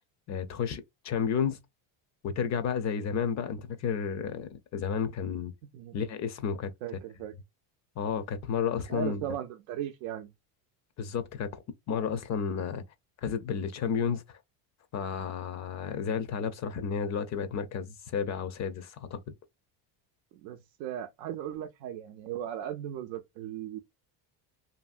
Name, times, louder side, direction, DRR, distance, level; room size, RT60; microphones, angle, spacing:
voice 1, 0.3-1.6 2.2-5.5 5.9-6.7 8.0-9.2 11.0-11.5 11.9-12.8 13.2-14.4 14.9-19.2, left 6 dB, 40° left, 0.4 m, -32 dB
voice 2, 6.8-7.3 8.9-10.3 20.3-23.8, right 10 dB, 85° right, 0.5 m, -37 dB
2.7 x 2.7 x 2.4 m
cardioid pair, 130°, 48 cm